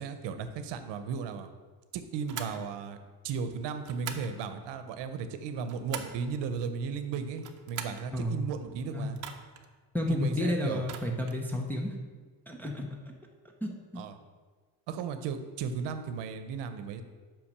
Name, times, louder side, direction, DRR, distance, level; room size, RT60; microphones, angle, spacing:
voice 1, 0.0-1.5 1.9-3.0 3.2-9.2 10.1-10.9 14.0-14.2 14.9-17.0, right 6 dB, 80° right, 9 dB, 0.8 m, -35 dB
sound 1, 2.3-2.6 3.8-4.3 5.4-6.2 7.3-8.1 9.1-9.7 10.8-11.4, right 9 dB, 45° right, 0.7 m, -42 dB
voice 2, 9.9-11.9 12.5-13.1 13.6-14.0, left 1 dB, 5° left, -1 dB, 0.5 m, -31 dB
5.8 x 5.2 x 6.6 m, 1.4 s
cardioid pair, 180°, 42 cm